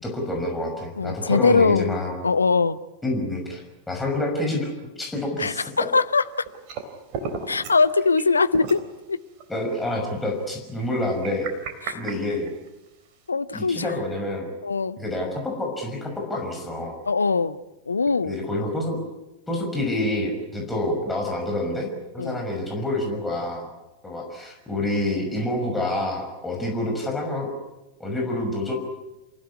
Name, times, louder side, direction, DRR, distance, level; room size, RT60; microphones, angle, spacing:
voice 1, 0.0-2.2 3.0-3.6 3.9-4.7 5.0-5.9 9.5-11.5 11.9-12.5 13.5-14.5 15.0-17.0 18.2-19.0 19.5-21.9 22.1-23.7 24.0-27.5 28.0-28.7, left 1 dB, 10° left, 0 dB, 5.9 m, -27 dB
voice 2, 1.0-2.8 5.4-6.5 7.5-9.2 11.8-12.0 13.3-13.9 14.6-15.0 17.1-17.6 17.9-18.3 22.2-22.4, left 4 dB, 75° left, 15 dB, 0.9 m, -22 dB
sound 1, 6.0-7.8 8.1-8.3 8.5-8.8 9.4-9.5 10.8-12.9, right 5 dB, 45° right, 3.7 m, -34 dB
28.5 x 16.0 x 9.6 m, 1.0 s
figure-of-eight pair, 90°, 0 cm